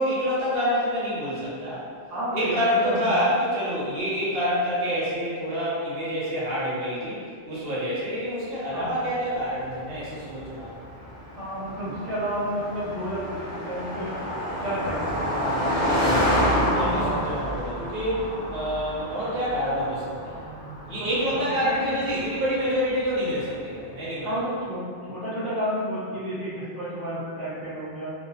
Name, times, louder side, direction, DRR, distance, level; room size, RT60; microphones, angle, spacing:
voice 1, 0.0-1.8 2.3-7.2 7.4-10.8 16.6-20.5 20.9-24.3, equal, 60° right, -8 dB, 0.9 m, -27 dB
voice 2, 2.1-3.1 8.7-8.9 11.3-14.1 14.6-15.8 16.9-17.4 21.0-21.9 24.2-28.1, equal, ahead, -12 dB, 0.5 m, -31 dB
Car passing by, 9.5-23.2, equal, 70° left, 1.1 m, -29 dB
2.7 x 2.0 x 2.7 m, 2.1 s
omnidirectional pair, 1.1 m